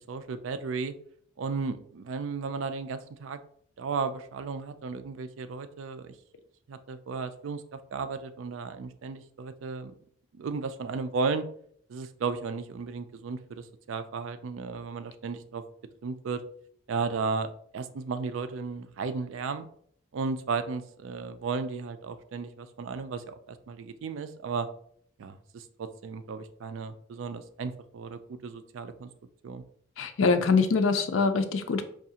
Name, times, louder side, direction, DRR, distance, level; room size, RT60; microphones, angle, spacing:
voice 1, 0.1-0.9 1.4-3.4 3.8-6.1 6.7-7.6 7.9-9.9 10.3-11.5 11.9-15.6 16.0-16.4 16.9-19.7 20.1-24.7 25.2-29.1 29.4-29.6, right 4 dB, 75° right, 11 dB, 0.4 m, -34 dB
voice 2, 30.0-31.8, left 4 dB, 80° left, 7 dB, 0.5 m, -24 dB
4.6 x 2.4 x 2.7 m, 0.63 s
head